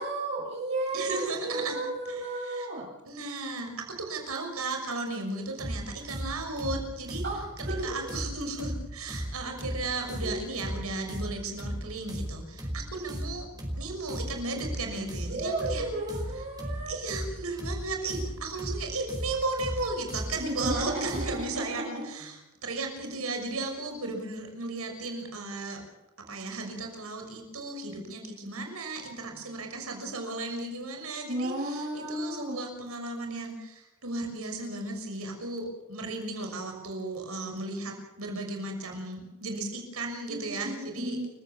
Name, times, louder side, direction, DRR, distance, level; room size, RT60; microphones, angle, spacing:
voice 1, 0.0-2.9 7.2-8.0 10.2-10.3 14.9-15.0 15.3-16.9 20.3-22.1 31.3-32.6 40.3-41.3, right 1 dB, 60° right, -5 dB, 7.7 m, -33 dB
voice 2, 0.9-1.8 2.1-2.7 3.0-3.7 4.0-7.2 7.8-13.5 13.8-15.9 16.9-25.8 26.3-41.3, right 3 dB, 85° right, 3 dB, 6.2 m, -35 dB
sound 1, 5.6-21.5, equal, 20° right, 4.8 m, -36 dB
29.5 x 16.0 x 7.2 m, 0.98 s
head